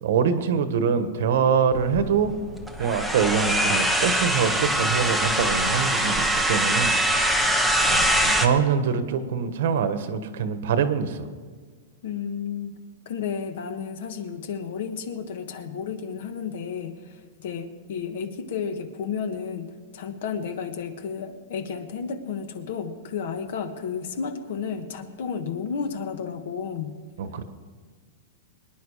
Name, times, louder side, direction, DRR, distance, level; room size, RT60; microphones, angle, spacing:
voice 1, 0.0-2.3 2.8-6.9 7.9-11.2 27.2-27.4, right 6 dB, 55° right, 10 dB, 1.2 m, -24 dB
sound 1, 1.7-8.5, right 1 dB, ahead, 0.8 m, -23 dB
voice 2, 12.0-12.8 13.0-27.0, left 6 dB, 50° left, 8 dB, 1.4 m, -32 dB
24.0 x 10.5 x 5.0 m, 1.5 s
supercardioid pair, 180°, 0 cm